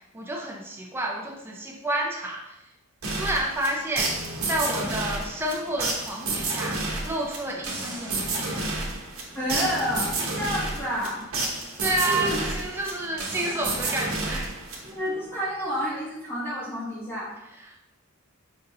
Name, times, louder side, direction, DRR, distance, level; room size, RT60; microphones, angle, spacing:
voice 1, 0.1-2.5 3.1-4.1 4.5-8.7 11.8-14.5 17.5-17.8, right 1 dB, 10° right, -1 dB, 0.5 m, -30 dB
sound 1, 3.0-15.2, right 2 dB, 85° right, 0.9 m, -30 dB
voice 2, 9.3-11.2 12.1-12.4 14.9-17.3, equal, 10° left, -9 dB, 0.8 m, -29 dB
5.2 x 2.6 x 2.7 m, 0.91 s
head